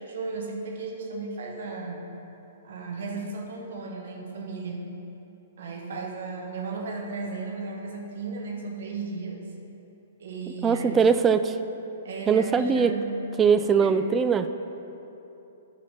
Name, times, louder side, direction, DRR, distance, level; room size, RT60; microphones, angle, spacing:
voice 1, 0.0-2.0 2.6-4.9 5.6-9.4 10.2-11.1 12.0-13.1 13.6-14.0, right 3 dB, 60° right, 0 dB, 1.4 m, -35 dB
voice 2, 10.6-11.5 12.3-12.9 13.4-14.5, right 6 dB, 20° right, 10 dB, 0.4 m, -21 dB
10.5 x 5.6 x 5.5 m, 3.0 s
figure-of-eight pair, 120°, 0 cm